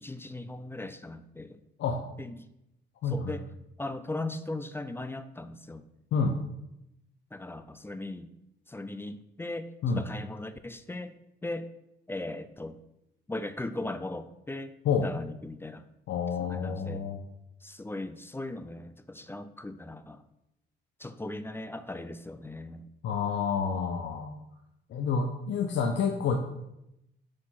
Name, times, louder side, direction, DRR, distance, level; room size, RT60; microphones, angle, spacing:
voice 1, 0.0-1.6 2.2-2.5 3.0-3.5 3.8-5.8 7.3-8.3 8.7-11.1 11.4-11.7 12.1-12.8 13.3-14.7 15.0-15.8 16.4-17.1 17.6-20.2 21.0-22.9, left 2 dB, 10° left, 11 dB, 0.4 m, -38 dB
voice 2, 16.1-17.2 23.0-24.4 24.9-26.4, left 5 dB, 75° left, 3 dB, 0.7 m, -28 dB
6.3 x 4.7 x 5.7 m, 0.86 s
cardioid pair, 105°, 19 cm